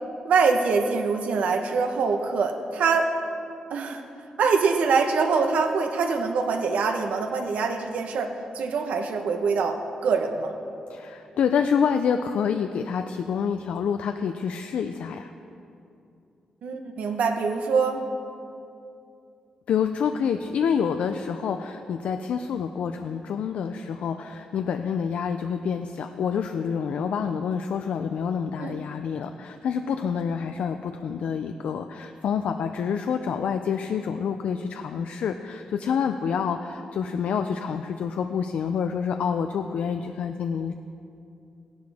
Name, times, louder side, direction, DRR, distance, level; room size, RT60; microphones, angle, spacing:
voice 1, 0.2-3.1 3.7-4.0 4.4-10.6 16.6-18.0 28.6-28.7, right 5 dB, 85° right, 5 dB, 1.0 m, -24 dB
voice 2, 10.9-15.3 19.7-40.7, left 7 dB, 75° left, 7 dB, 0.4 m, -27 dB
17.0 x 11.5 x 3.5 m, 2.6 s
wide cardioid pair, 160°, 2 cm